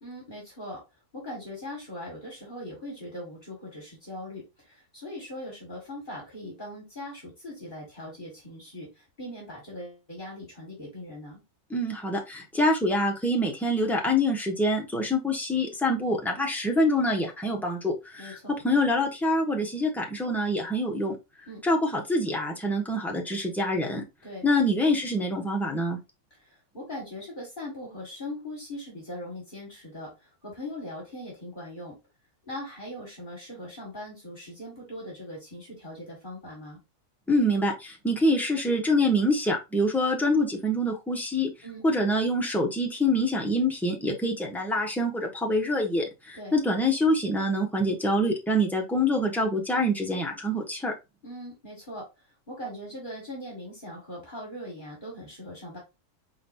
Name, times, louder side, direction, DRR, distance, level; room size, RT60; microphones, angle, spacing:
voice 1, 0.0-0.8 1.1-11.4 18.2-18.5 21.5-21.6 24.2-24.5 26.3-32.0 32.4-36.8 41.6-41.8 46.3-46.6 51.2-52.1 52.5-55.8, left 1 dB, 35° left, -3 dB, 2.0 m, -40 dB
voice 2, 11.7-18.4 18.6-21.2 21.6-24.0 24.4-26.0 37.3-41.5 41.8-50.9, left 1 dB, ahead, -1 dB, 0.7 m, -25 dB
4.4 x 3.9 x 2.7 m, 0.25 s
omnidirectional pair, 1.6 m